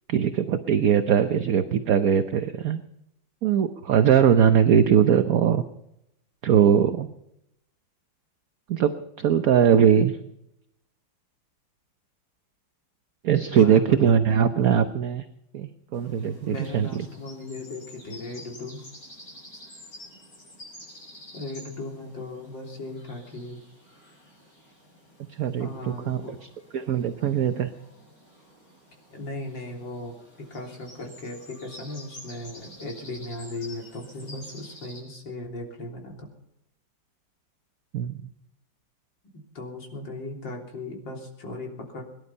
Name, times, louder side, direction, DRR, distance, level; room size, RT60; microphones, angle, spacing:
voice 1, 0.1-2.8 3.4-5.6 6.4-7.1 8.7-10.2 13.2-15.2 15.5-16.9 25.4-27.7 37.9-38.2, right 8 dB, 60° right, 9 dB, 1.2 m, -21 dB
voice 2, 13.5-14.1 16.5-18.9 21.3-23.6 25.6-26.3 29.1-36.3 39.3-42.0, left 2 dB, 75° left, 1 dB, 4.2 m, -37 dB
sound 1, 15.9-35.0, left 1 dB, 45° left, 8.0 m, -49 dB
22.5 x 11.5 x 5.6 m, 0.83 s
omnidirectional pair, 2.0 m